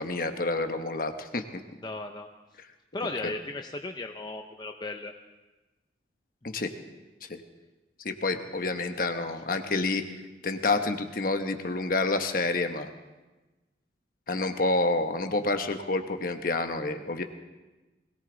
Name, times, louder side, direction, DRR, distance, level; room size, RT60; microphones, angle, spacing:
voice 1, 0.0-1.4 2.6-2.7 3.2-3.3 6.4-6.7 7.2-7.4 8.0-10.0 10.4-12.9 14.3-17.2, left 3 dB, 50° left, 7 dB, 1.1 m, -28 dB
voice 2, 1.8-2.3 2.9-5.1, left 2 dB, 25° left, 5 dB, 0.6 m, -36 dB
21.0 x 17.5 x 4.0 m, 1.2 s
head